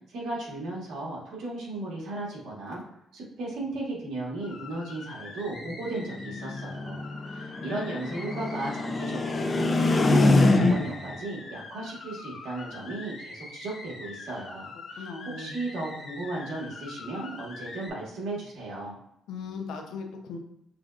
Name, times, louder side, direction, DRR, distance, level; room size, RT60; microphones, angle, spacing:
voice 1, 0.1-2.8 3.1-19.0, right 2 dB, 80° right, -4 dB, 1.5 m, -35 dB
sound 1, 4.4-17.9, left 3 dB, 65° left, 1.4 m, -44 dB
sound 2, 5.6-11.1, left 2 dB, 30° left, 0.5 m, -25 dB
voice 2, 15.0-15.5 19.3-20.4, left 4 dB, 85° left, 4 dB, 0.6 m, -38 dB
5.7 x 2.4 x 2.4 m, 0.79 s
cardioid pair, 90°, 0 cm